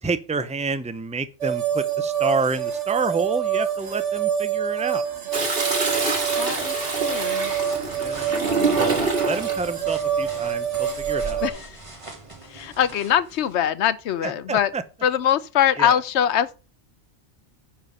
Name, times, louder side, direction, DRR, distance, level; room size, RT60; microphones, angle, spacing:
voice 1, 0.0-5.0 8.0-8.5 8.7-11.4 14.2-14.8 15.8-16.0, right 4 dB, 10° right, 0.4 m, -28 dB
sound 1, 1.4-11.5, right 8 dB, 80° right, 1.8 m, -26 dB
Toilet flush, 5.3-9.6 11.0-11.5, right 3 dB, 55° right, 2.1 m, -26 dB
sound 2, 5.8-13.6, right 2 dB, 25° right, 2.0 m, -43 dB
voice 2, 6.4-7.5 8.4-9.1 11.4-11.8 12.5-14.7 15.0-16.6, left 10 dB, 70° left, 1.0 m, -23 dB
10.0 x 4.6 x 5.4 m
omnidirectional pair, 1.2 m